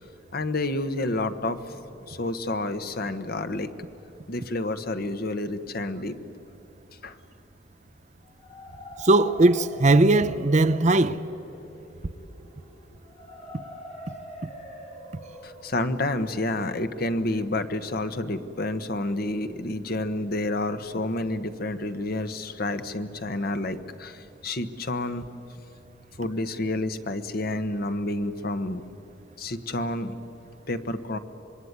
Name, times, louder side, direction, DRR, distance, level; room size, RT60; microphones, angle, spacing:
voice 1, 0.3-1.6 2.1-3.7 4.3-6.2 7.0-7.2 15.4-25.2 26.2-28.8 29.4-30.2 30.7-31.2, left 2 dB, 55° left, 1.2 m, -29 dB
sound 1, 8.2-18.1, equal, 35° left, 3.5 m, -45 dB
voice 2, 9.0-11.2, right 2 dB, 40° right, 0.7 m, -19 dB
26.0 x 22.5 x 9.6 m
head